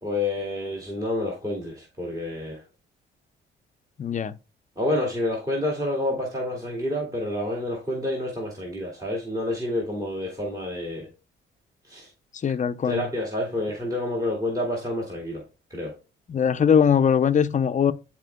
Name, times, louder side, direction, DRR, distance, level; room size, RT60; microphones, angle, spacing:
voice 1, 0.0-2.6 4.8-11.1 11.9-12.1 12.8-15.4 15.7-15.9, left 1 dB, 20° right, 2.3 m, -28 dB
voice 2, 4.0-4.3 12.4-13.1 16.3-17.9, left 7 dB, 40° left, 0.6 m, -21 dB
10.5 x 4.4 x 2.2 m
cardioid pair, 90°, 20 cm